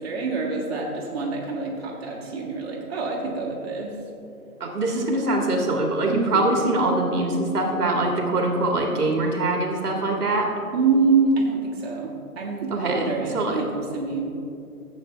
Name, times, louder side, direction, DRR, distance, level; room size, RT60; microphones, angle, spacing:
voice 1, 0.0-3.9 6.1-6.5 10.7-14.3, right 4 dB, 40° right, -3 dB, 1.9 m, -25 dB
voice 2, 4.6-10.5 12.7-13.6, right 2 dB, 75° right, 1 dB, 1.9 m, -23 dB
14.5 x 8.2 x 3.3 m, 2.7 s
hypercardioid pair, 160°, 46 cm